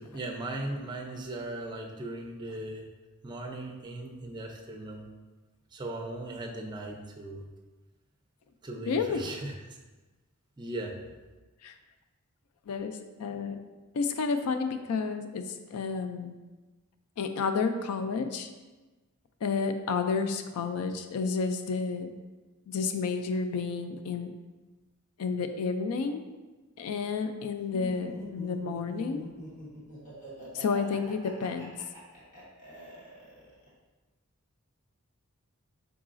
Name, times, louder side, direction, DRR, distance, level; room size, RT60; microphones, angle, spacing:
voice 1, 0.0-2.9 3.2-5.1 5.7-7.5 8.6-9.6 10.6-10.9, right 2 dB, 20° right, 1 dB, 0.5 m, -38 dB
voice 2, 8.9-9.2 11.6-11.7 12.7-13.6 13.9-16.3 17.2-18.5 19.4-22.1 22.7-24.3 25.2-26.2 26.8-29.2 30.5-31.7, left 5 dB, 75° left, 8 dB, 0.3 m, -31 dB
Laughter, 27.7-33.7, equal, 35° left, 1.1 m, -45 dB
4.7 x 3.9 x 2.5 m, 1.2 s
head